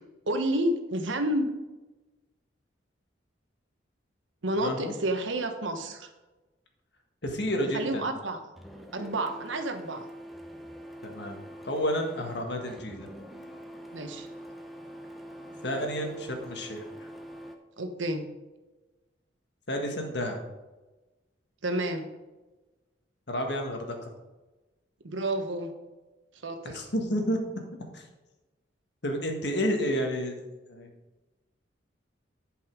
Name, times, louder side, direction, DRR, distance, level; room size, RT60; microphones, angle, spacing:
voice 1, 0.3-1.5 4.4-6.1 7.6-8.4 8.9-10.1 13.9-14.3 17.8-18.3 21.6-22.0 25.0-25.7 26.4-26.8, right 1 dB, 85° right, 6 dB, 1.2 m, -30 dB
voice 2, 4.6-4.9 7.2-8.0 11.0-11.4 11.6-13.1 15.6-17.1 19.7-20.4 23.3-24.1 26.6-27.4 27.9-28.0 29.0-30.4 30.7-30.9, equal, 65° left, 3 dB, 1.6 m, -30 dB
Printer, 8.6-17.6, equal, ahead, 0.7 m, -44 dB
11.0 x 5.5 x 5.2 m, 1.1 s
head